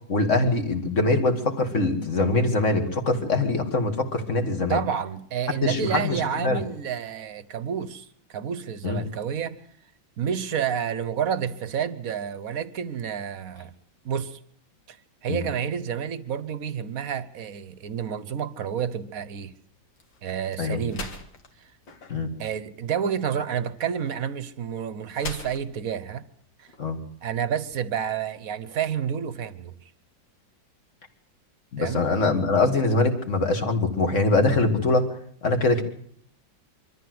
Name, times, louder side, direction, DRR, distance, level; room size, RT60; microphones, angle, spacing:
voice 1, 0.1-4.8 5.6-6.6 8.8-9.1 15.3-15.4 20.6-20.8 22.1-22.3 26.8-27.0 31.7-35.1 35.4-35.8, left 3 dB, 40° left, 2.5 m, -23 dB
voice 2, 4.7-9.6 10.2-13.7 14.0-14.4 14.9-15.0 15.2-19.5 20.2-21.1 22.4-26.2 26.6-26.7 27.2-29.7 31.8-32.1, right 8 dB, 50° right, 1.4 m, -29 dB
sound 1, 19.1-27.3, left 2 dB, 70° left, 2.8 m, -44 dB
24.5 x 14.0 x 7.9 m
omnidirectional pair, 2.1 m